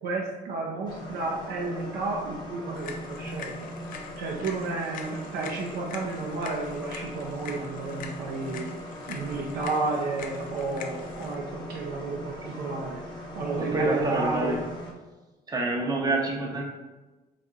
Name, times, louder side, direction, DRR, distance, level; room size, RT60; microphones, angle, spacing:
voice 1, 0.0-3.7 4.2-8.7 9.1-13.0 13.3-14.6, right 3 dB, 70° right, -2 dB, 0.5 m, -32 dB
sound 1, 0.8-14.9, equal, 25° left, 0.7 m, -39 dB
sound 2, 2.7-11.4, left 6 dB, 55° left, 0.4 m, -44 dB
voice 2, 13.6-14.6 15.5-16.6, right 2 dB, 25° right, 1 dB, 0.6 m, -27 dB
3.9 x 2.8 x 2.3 m, 1.2 s
cardioid pair, 110°, 17 cm